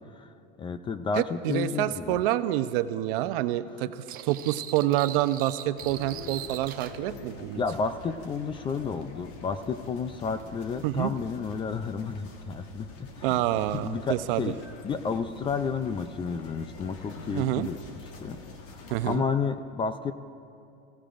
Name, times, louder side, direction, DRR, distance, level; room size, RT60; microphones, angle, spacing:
voice 1, 0.6-2.2 7.5-13.4 13.7-14.6 14.8-17.8 18.2-20.1, left 5 dB, 15° left, 11 dB, 0.4 m, -31 dB
voice 2, 1.2-7.6 10.8-11.1 13.2-14.4 17.3-17.7 18.9-19.2, right 14 dB, 65° right, 11 dB, 0.7 m, -27 dB
sound 1, 4.1-7.0, right 11 dB, 30° right, 0.7 m, -41 dB
sound 2, 5.8-19.2, left 3 dB, 50° left, 1.5 m, -45 dB
28.0 x 16.0 x 2.6 m, 2.8 s
supercardioid pair, 135°, 29 cm